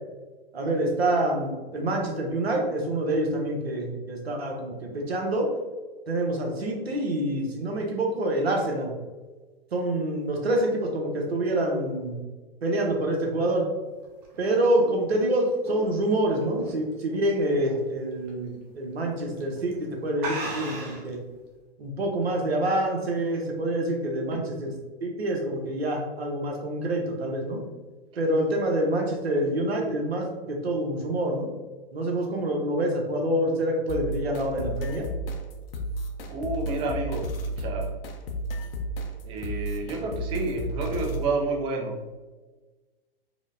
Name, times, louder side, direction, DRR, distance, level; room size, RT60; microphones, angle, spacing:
voice 1, 0.5-5.5 6.1-8.9 9.7-12.2 12.6-13.7 14.4-21.2 21.8-24.7 25.0-27.6 28.2-31.5 31.9-35.1, right 1 dB, 85° right, 1 dB, 0.9 m, -26 dB
sound 1, 14.0-17.2 17.6-17.9 18.3-18.4 19.2-19.4 19.7-19.8 20.2-21.1, right 2 dB, 40° right, 0.9 m, -36 dB
sound 2, 33.9-41.3, right 1 dB, 70° left, 0.7 m, -33 dB
voice 2, 36.3-38.0 39.2-42.0, right 3 dB, 20° right, 2 dB, 0.4 m, -30 dB
4.8 x 2.1 x 2.6 m, 1.3 s
hypercardioid pair, 120°, 30 cm